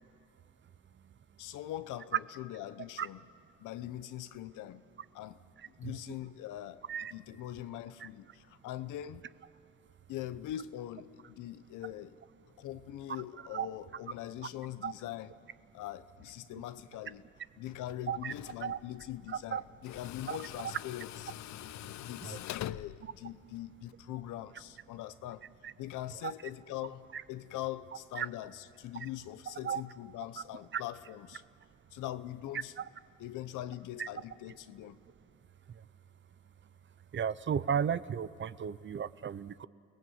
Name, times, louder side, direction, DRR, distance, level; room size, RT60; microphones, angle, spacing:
voice 1, 1.4-3.2 3.6-4.8 5.1-5.4 5.8-6.8 7.1-9.3 10.1-12.2 12.6-15.3 15.7-17.2 17.6-21.1 22.0-25.5 25.8-31.4 31.9-32.7 33.2-35.0, left 13 dB, 90° left, 13 dB, 0.8 m, -42 dB
Tools, 17.7-23.9, left 14 dB, 65° left, 0.5 m, -45 dB
voice 2, 19.3-19.6 20.3-20.4 22.2-22.4 23.0-23.1 25.6-25.7 26.2-26.3 27.1-27.2 28.1-28.3 29.6-29.8 30.7-30.8 34.0-34.1 35.7-35.8 37.1-39.7, right 8 dB, 40° right, 17 dB, 0.7 m, -34 dB
29.0 x 18.0 x 7.8 m, 2.3 s
cardioid pair, 90°, 30 cm